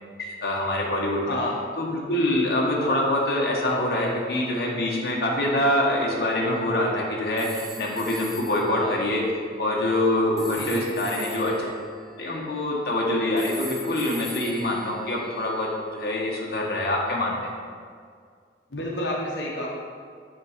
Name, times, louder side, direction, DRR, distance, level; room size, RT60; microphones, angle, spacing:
voice 1, 0.2-1.4 1.8-9.2 9.6-11.5 12.2-17.5, left 1 dB, 60° left, -3 dB, 1.0 m, -25 dB
sound 1, 7.4-8.7 10.4-12.8 13.4-15.7, equal, ahead, 1.0 m, -41 dB
voice 2, 10.5-10.9 18.7-19.7, left 1 dB, 80° left, -3 dB, 0.9 m, -30 dB
7.2 x 3.7 x 4.9 m, 2.1 s
head